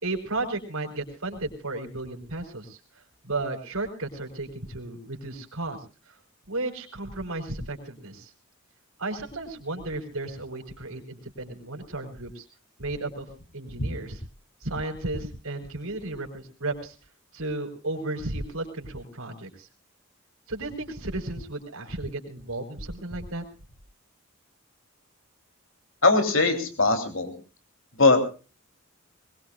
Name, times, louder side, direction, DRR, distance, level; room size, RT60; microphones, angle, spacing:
voice 1, 0.0-2.8 3.2-5.8 6.1-6.2 6.5-8.3 9.0-12.5 12.8-14.2 14.6-16.9 17.3-19.7 20.5-23.4, right 2 dB, 80° right, 4 dB, 4.4 m, -34 dB
voice 2, 26.0-27.3 28.0-28.2, left 3 dB, 65° left, 6 dB, 3.4 m, -20 dB
22.0 x 21.0 x 2.5 m, 0.34 s
head